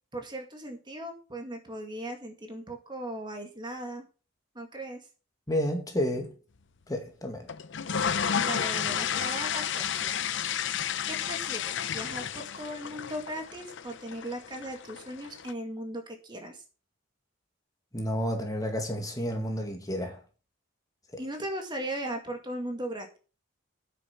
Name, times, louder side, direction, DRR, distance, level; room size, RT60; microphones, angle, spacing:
voice 1, 0.1-4.1 4.5-5.0 8.3-10.3 10.6-10.7 11.1-16.6 21.2-23.2, right 1 dB, 25° right, 2.2 m, -38 dB
voice 2, 5.5-6.3 6.9-7.5 17.9-20.2, equal, 20° left, 2.0 m, -30 dB
sound 1, 7.5-15.5, left 8 dB, 65° left, 0.7 m, -32 dB
9.2 x 6.9 x 5.9 m
head